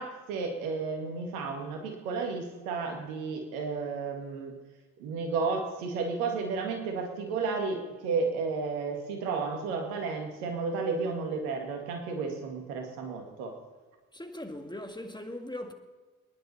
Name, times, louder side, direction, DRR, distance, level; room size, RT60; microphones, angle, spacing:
voice 1, 0.0-4.5 5.0-13.5, right 4 dB, 85° right, 2.0 m, -32 dB
voice 2, 14.1-15.7, left 1 dB, 10° left, 1.9 m, -39 dB
24.0 x 10.5 x 4.2 m
hypercardioid pair, 45°, 42 cm